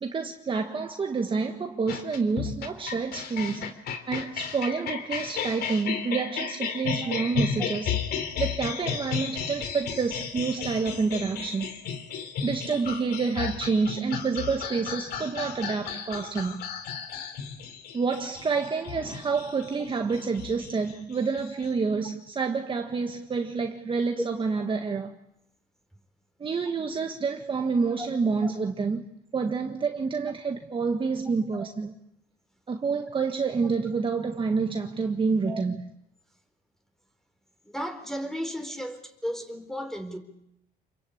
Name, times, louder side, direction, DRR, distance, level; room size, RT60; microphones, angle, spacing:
voice 1, 0.0-3.7 4.1-7.9 8.4-11.8 12.4-16.6 17.9-25.1 26.4-31.9 32.7-35.8, right 4 dB, 30° right, 1.7 m, -28 dB
sound 1, 1.9-21.7, left 7 dB, 70° left, 3.3 m, -34 dB
voice 2, 37.6-40.2, equal, ahead, 4.3 m, -35 dB
28.5 x 23.0 x 8.7 m
cardioid pair, 110°, 17 cm